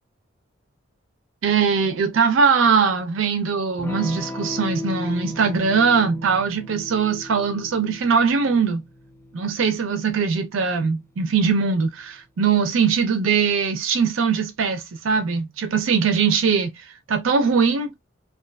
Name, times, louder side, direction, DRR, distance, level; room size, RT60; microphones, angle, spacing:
voice 1, 1.4-8.8 9.3-17.9, right 5 dB, 85° right, 0.5 m, -21 dB
Electric guitar / Strum, 3.8-12.1, left 2 dB, 10° left, 0.4 m, -38 dB
2.5 x 2.4 x 2.2 m
head